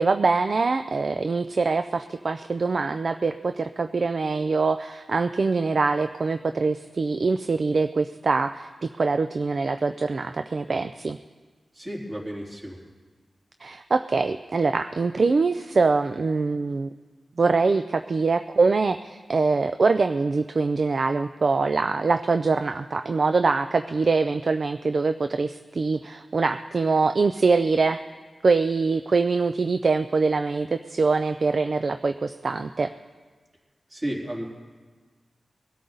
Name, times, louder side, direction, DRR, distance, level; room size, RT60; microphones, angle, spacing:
voice 1, 0.0-8.7 9.0-11.2 13.6-16.9 17.4-28.0 28.4-32.9, right 4 dB, 55° right, 9 dB, 0.4 m, -23 dB
voice 2, 11.7-12.8 33.9-34.4, right 1 dB, 35° right, -3 dB, 3.5 m, -32 dB
22.0 x 13.0 x 3.9 m, 1.4 s
wide cardioid pair, 105°, 0 cm